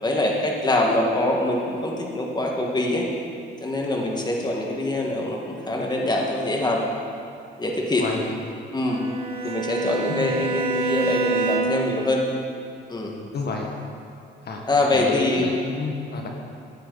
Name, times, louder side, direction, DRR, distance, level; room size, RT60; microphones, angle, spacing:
voice 1, 0.0-3.1 3.6-6.8 7.6-8.1 8.7-9.0 9.4-12.2 12.9-13.1 14.7-15.5, left 1 dB, 20° left, -1 dB, 1.7 m, -24 dB
Bowed string instrument, 8.9-12.0, right 4 dB, 30° right, 2.2 m, -26 dB
voice 2, 13.0-13.7 14.4-14.6 14.9-16.3, left 3 dB, 55° left, 1 dB, 1.5 m, -29 dB
15.0 x 8.6 x 4.1 m, 2.4 s
cardioid pair, 90°, 20 cm